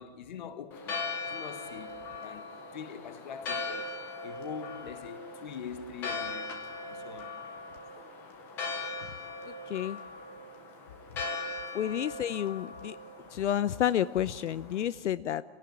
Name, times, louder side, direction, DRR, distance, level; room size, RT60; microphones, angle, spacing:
voice 1, 0.0-4.0 4.2-7.4, left 7 dB, 40° left, 1.5 m, -44 dB
Church bell, 0.7-14.8, left 3 dB, 5° left, 0.7 m, -40 dB
voice 2, 9.7-10.0 11.7-13.0 13.3-15.4, left 10 dB, 75° left, 0.7 m, -30 dB
27.0 x 17.5 x 9.3 m
hypercardioid pair, 175°, 35 cm